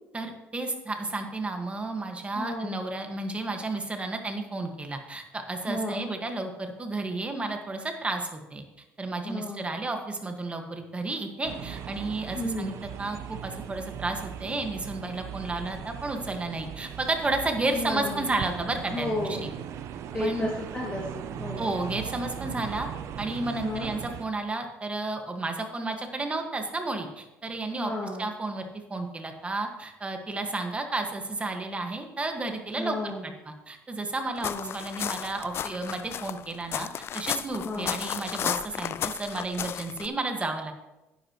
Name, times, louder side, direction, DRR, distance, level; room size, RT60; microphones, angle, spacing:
voice 1, 0.1-8.6 9.0-13.2 13.4-19.5 20.1-20.5 21.6-22.9 23.2-27.9 28.2-36.9 37.1-40.7, right 2 dB, 25° right, 4 dB, 1.8 m, -32 dB
voice 2, 2.3-2.7 5.7-6.1 9.2-9.7 12.3-12.7 17.7-18.3 18.9-19.5 20.1-21.7 23.6-23.9 27.8-28.3 32.7-33.3 34.4-34.8 37.6-37.9, left 1 dB, 20° left, -3 dB, 2.1 m, -33 dB
sound 1, 11.4-24.3, right 9 dB, 65° right, 0.7 m, -39 dB
sound 2, 34.4-40.1, left 9 dB, 50° left, 0.3 m, -33 dB
10.5 x 9.8 x 3.2 m, 0.98 s
supercardioid pair, 80°, 5 cm